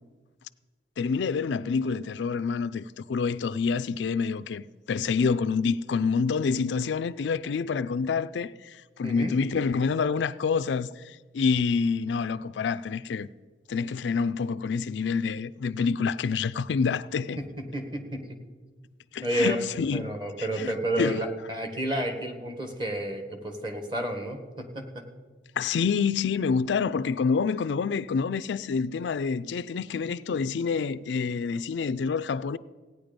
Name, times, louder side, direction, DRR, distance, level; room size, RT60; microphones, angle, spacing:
voice 1, 1.0-13.3 13.7-17.4 19.1-20.1 20.4-21.2 25.6-32.6, left 5 dB, 80° left, 0.4 m, -27 dB
voice 2, 9.0-9.3 17.4-18.2 19.2-19.6 19.9-25.0, right 1 dB, 30° right, 1.6 m, -31 dB
16.5 x 9.5 x 5.2 m
head